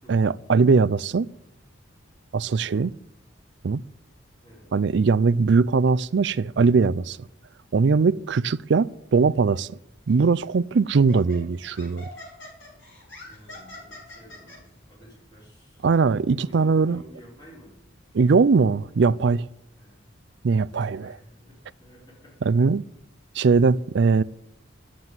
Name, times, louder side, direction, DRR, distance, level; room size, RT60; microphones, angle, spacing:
voice 1, 0.1-1.3 2.3-2.9 3.6-3.8 4.7-7.2 7.7-9.8 10.1-12.1 15.8-17.0 18.1-19.5 20.4-21.0 22.5-22.8 23.4-24.2, right 4 dB, 60° right, 0.4 m, -20 dB
Laughter, 10.1-10.3 10.9-14.6, left 2 dB, 65° left, 5.2 m, -43 dB
voice 2, 13.2-15.9 16.4-17.8 19.8-20.0 20.7-22.7, equal, 20° left, 4.9 m, -50 dB
11.5 x 7.5 x 9.4 m
head